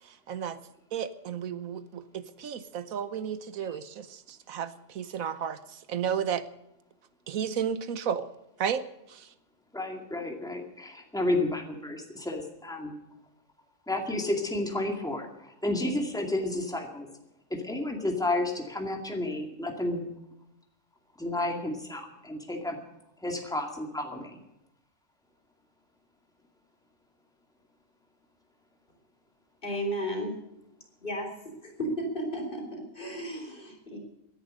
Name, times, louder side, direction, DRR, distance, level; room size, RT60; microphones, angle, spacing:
voice 1, 0.3-0.6 0.9-6.4 7.3-8.3 8.6-8.8 9.1-9.3, right 8 dB, 80° right, 13 dB, 1.3 m, -33 dB
voice 2, 9.7-12.9 13.9-17.1 17.5-20.0 21.2-22.8 23.2-24.4, left 2 dB, 5° left, 2 dB, 2.2 m, -31 dB
voice 3, 29.6-30.4 31.0-34.0, equal, 40° left, 2 dB, 4.3 m, -34 dB
17.5 x 11.0 x 6.4 m, 0.86 s
omnidirectional pair, 1.4 m